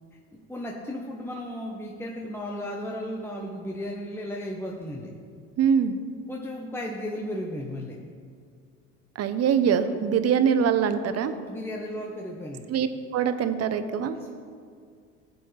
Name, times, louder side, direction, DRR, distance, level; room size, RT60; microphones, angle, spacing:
voice 1, 0.3-5.1 6.3-8.0 11.5-12.7 14.2-14.3, left 1 dB, 5° left, -2 dB, 1.1 m, -35 dB
voice 2, 5.6-6.0 9.2-11.3 12.7-12.9 13.1-14.2, right 7 dB, 40° right, 10 dB, 0.9 m, -23 dB
15.5 x 7.6 x 3.4 m, 2.1 s
hypercardioid pair, 70°, 38 cm